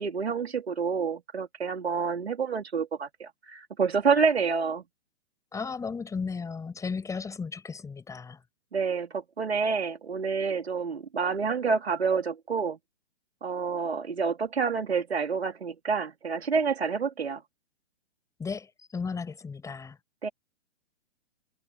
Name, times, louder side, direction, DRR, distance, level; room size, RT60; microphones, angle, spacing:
voice 1, 0.0-4.8 8.7-12.8 13.4-17.4 20.2-20.3, right 5 dB, 65° right, 3.3 m, -28 dB
voice 2, 5.5-8.4 18.4-20.0, left 5 dB, 10° left, 6.3 m, -35 dB
figure-of-eight pair, 115°, 34 cm